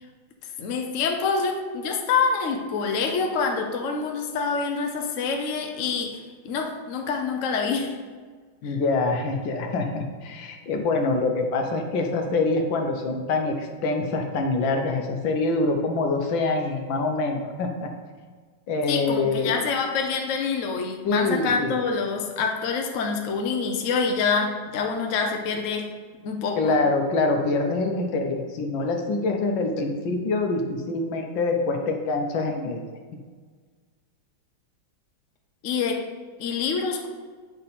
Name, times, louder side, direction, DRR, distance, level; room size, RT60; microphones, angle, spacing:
voice 1, 0.6-6.2 6.4-8.0 8.6-8.8 18.9-25.9 26.2-26.8 35.6-36.1 36.4-37.1, left 5 dB, 55° left, 3 dB, 0.9 m, -26 dB
voice 2, 8.6-17.9 18.7-19.5 21.0-21.7 26.6-32.8, left 3 dB, 70° left, 3 dB, 1.6 m, -25 dB
9.0 x 5.4 x 4.2 m, 1.5 s
omnidirectional pair, 2.2 m